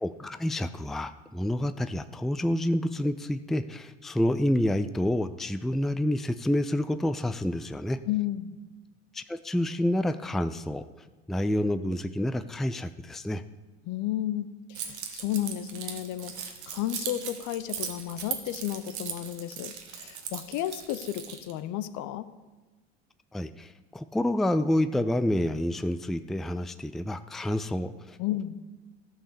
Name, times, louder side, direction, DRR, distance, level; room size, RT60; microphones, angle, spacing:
voice 1, 0.0-8.0 9.1-10.9 11.3-13.4 23.3-28.2, left 1 dB, ahead, 11 dB, 0.5 m, -28 dB
voice 2, 8.1-8.6 13.9-22.3 28.2-28.6, left 13 dB, 60° left, 13 dB, 0.8 m, -33 dB
Keys jangling, 14.8-21.5, right 8 dB, 85° right, 1.3 m, -38 dB
13.5 x 5.4 x 6.8 m, 1.2 s
hypercardioid pair, 70°, 33 cm